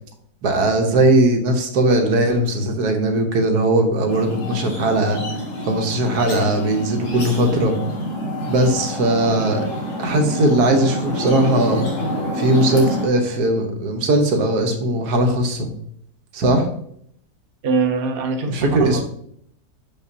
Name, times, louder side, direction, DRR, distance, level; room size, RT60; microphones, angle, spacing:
voice 1, 0.4-5.2 5.7-7.7 8.5-9.7 10.0-11.9 12.3-15.7 16.3-16.7 18.4-19.0, right 1 dB, 75° right, 4 dB, 1.4 m, -19 dB
sound 1, 4.1-13.1, left 1 dB, 55° left, 2.0 m, -27 dB
voice 2, 17.6-19.0, right 4 dB, 45° right, 3 dB, 0.8 m, -23 dB
6.4 x 5.6 x 2.7 m, 0.68 s
omnidirectional pair, 1.7 m